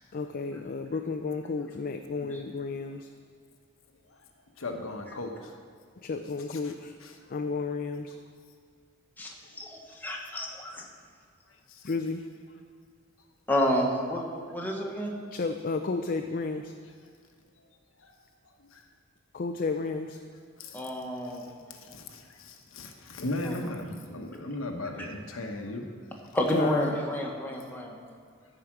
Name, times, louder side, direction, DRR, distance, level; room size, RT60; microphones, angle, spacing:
voice 1, 0.1-3.1 6.0-6.9 7.3-8.1 11.8-12.2 15.3-16.7 19.3-20.2 26.5-26.9, left 4 dB, 45° left, 6 dB, 0.5 m, -32 dB
voice 2, 4.6-5.5 6.5-6.7 7.0-7.1 20.6-20.7 21.9-25.8, left 2 dB, 85° left, 3 dB, 1.1 m, -36 dB
voice 3, 9.2-10.8 13.5-15.1 20.7-21.4 23.4-23.7 25.0-25.1 26.3-28.0, left 1 dB, 10° left, -1 dB, 1.3 m, -30 dB
14.0 x 5.0 x 6.0 m, 2.1 s
head